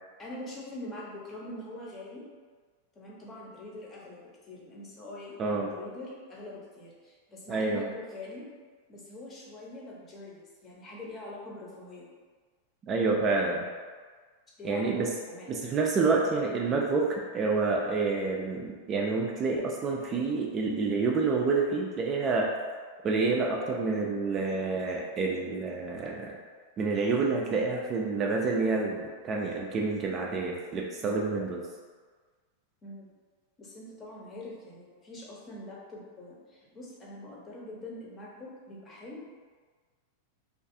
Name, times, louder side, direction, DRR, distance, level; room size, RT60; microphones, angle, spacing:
voice 1, 0.2-2.2 2.9-8.4 8.9-12.1 14.6-15.6 31.0-31.1 32.8-33.1 33.6-39.2, left 1 dB, 25° left, -4 dB, 0.7 m, -44 dB
voice 2, 5.4-5.7 7.5-7.8 12.9-13.7 14.6-15.1 15.5-22.5 23.0-26.4 26.8-31.6, right 4 dB, 30° right, -1 dB, 0.3 m, -28 dB
2.5 x 2.3 x 2.6 m, 1.5 s
hypercardioid pair, 125°, 0 cm